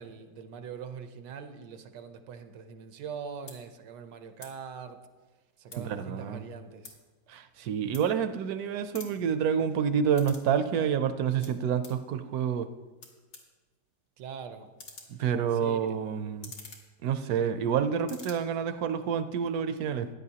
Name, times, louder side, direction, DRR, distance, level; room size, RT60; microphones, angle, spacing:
voice 1, 0.0-5.0 5.6-7.0 14.2-14.7 15.5-16.0, right 6 dB, 85° right, 8 dB, 1.4 m, -42 dB
sound 1, 2.9-3.1 3.4-3.6 4.3-4.5 4.9-6.0 6.4-8.5 8.8-10.5 10.8-12.0 12.7-12.8 13.0-17.7 17.9-18.3, left 3 dB, 65° left, 2.2 m, -49 dB
voice 2, 5.8-6.4 7.3-12.7 15.1-16.5 17.0-20.1, right 7 dB, 70° right, 10 dB, 1.0 m, -28 dB
15.0 x 10.0 x 2.8 m, 1.3 s
omnidirectional pair, 1.8 m